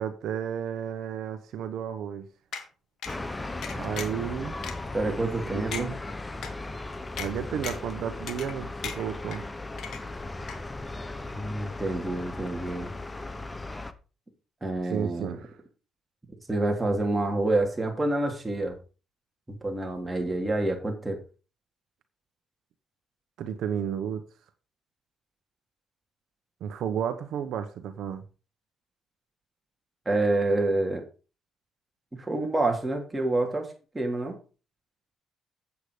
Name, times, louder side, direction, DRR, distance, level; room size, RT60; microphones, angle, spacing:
voice 1, 0.0-2.3 3.8-4.6 5.1-6.0 7.2-9.5 14.9-15.6 23.4-24.3 26.6-28.2, right 8 dB, 80° right, 1.1 m, -32 dB
sound 1, 2.5-2.6 3.0-3.2 3.6-4.2 4.6-4.7 5.2-5.3 5.7-5.9 6.4-6.5 7.2-7.3 7.6-7.9 8.3-8.6 8.8-9.4 9.8-10.2 10.5-10.6, left 7 dB, 65° left, 2.1 m, -36 dB
sound 2, 3.0-13.9, left 2 dB, 20° left, 1.1 m, -37 dB
voice 2, 4.9-5.9 11.3-12.9 14.6-15.4 16.5-18.8 19.5-21.2 30.0-31.0 32.1-34.4, right 2 dB, 15° right, 3.4 m, -28 dB
8.4 x 8.2 x 5.1 m
cardioid pair, 90°, 0 cm